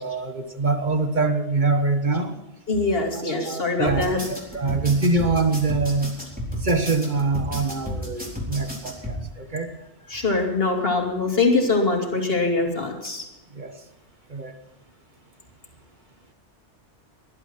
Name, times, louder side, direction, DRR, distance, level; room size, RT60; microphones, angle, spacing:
voice 1, 0.0-2.3 3.4-6.2 6.6-9.7 13.5-13.8 14.3-14.5, right 3 dB, 40° right, 8 dB, 1.3 m, -24 dB
voice 2, 2.7-4.2 10.1-13.2, left 3 dB, 50° left, 2 dB, 2.9 m, -23 dB
sound 1, 3.9-9.2, equal, 5° right, 4.1 m, -32 dB
19.0 x 12.0 x 4.5 m, 0.99 s
omnidirectional pair, 1.3 m